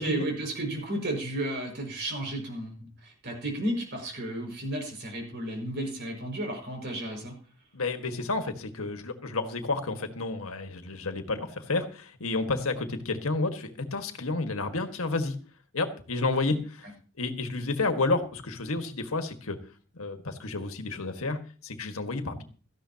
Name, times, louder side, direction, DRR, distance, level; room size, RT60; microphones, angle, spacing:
voice 1, 0.0-7.4, right 1 dB, 55° right, 1 dB, 5.8 m, -33 dB
voice 2, 7.7-15.3 15.7-16.9 17.2-19.6 19.9-22.4, left 3 dB, 85° left, 6 dB, 1.7 m, -30 dB
17.0 x 14.0 x 2.9 m, 0.39 s
head